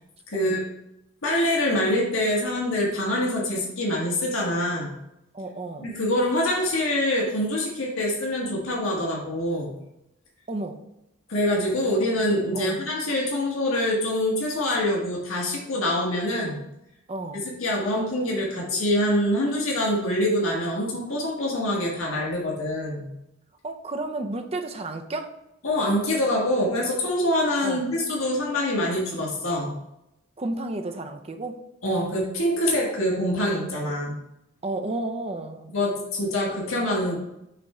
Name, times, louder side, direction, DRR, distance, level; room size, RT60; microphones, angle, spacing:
voice 1, 0.3-0.6 1.2-4.9 5.8-9.7 11.3-16.6 17.6-23.1 25.6-29.7 31.8-34.2 35.7-37.2, left 1 dB, 90° left, -3 dB, 1.6 m, -25 dB
voice 2, 5.3-5.9 10.5-10.8 12.5-12.8 17.1-17.4 23.6-25.3 27.6-27.9 30.4-31.6 34.6-35.7, right 2 dB, 30° right, 5 dB, 0.6 m, -32 dB
6.7 x 3.6 x 4.3 m, 0.84 s
head